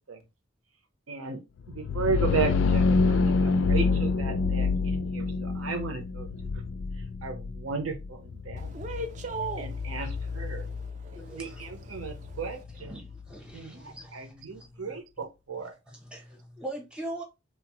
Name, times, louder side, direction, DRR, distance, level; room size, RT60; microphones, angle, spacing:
voice 1, 1.1-1.4 1.7-6.3 7.2-8.7 9.6-10.7 11.3-13.0 13.5-15.7, right 5 dB, 90° right, 0.7 m, -35 dB
sound 1, 1.6-13.3, left 4 dB, 65° left, 0.3 m, -28 dB
voice 2, 8.6-12.6, right 3 dB, 35° right, 0.4 m, -40 dB
voice 3, 11.1-15.2 15.6-17.2, right 1 dB, 5° right, 0.7 m, -43 dB
3.1 x 2.0 x 2.9 m
head